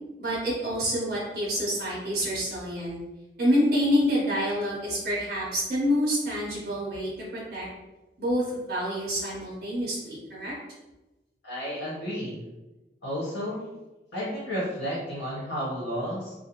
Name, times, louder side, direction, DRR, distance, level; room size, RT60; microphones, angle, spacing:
voice 1, 0.2-3.0 3.4-7.7 8.2-10.5, equal, 55° right, -6 dB, 0.7 m, -27 dB
voice 2, 11.4-12.4 13.0-13.6 14.1-16.3, equal, 85° left, -8 dB, 0.9 m, -32 dB
2.4 x 2.1 x 2.8 m, 1.1 s
head